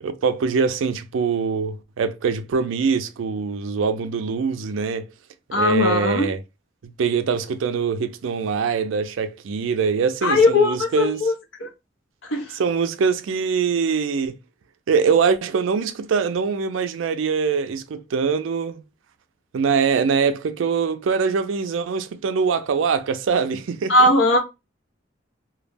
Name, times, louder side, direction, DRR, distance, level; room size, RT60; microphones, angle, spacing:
voice 1, 0.0-5.1 5.5-6.4 6.8-11.2 12.6-14.4 14.9-18.8 19.5-24.1, right 5 dB, 80° right, 0.4 m, -23 dB
voice 2, 5.5-6.3 10.2-11.3 11.6-11.7 12.2-12.5 23.9-24.4, left 2 dB, 75° left, 0.7 m, -18 dB
2.2 x 2.0 x 3.3 m
head